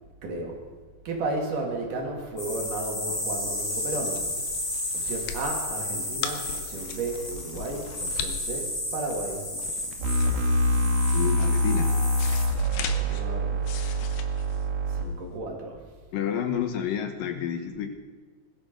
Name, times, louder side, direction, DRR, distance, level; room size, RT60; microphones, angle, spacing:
voice 1, 0.2-0.7 1.1-4.4 4.9-9.5 12.8-13.6 14.9-15.8, right 2 dB, 60° right, 1 dB, 3.7 m, -33 dB
sound 1, 2.4-12.5, left 1 dB, 50° left, 8.4 m, -33 dB
sound 2, 3.3-15.3, left 8 dB, 90° left, 2.9 m, -40 dB
sound 3, 10.0-15.0, equal, 85° right, 3.6 m, -25 dB
voice 2, 11.1-11.9 16.1-17.9, left 8 dB, 70° left, 7 dB, 2.7 m, -29 dB
20.5 x 12.5 x 5.2 m, 1.4 s
omnidirectional pair, 4.2 m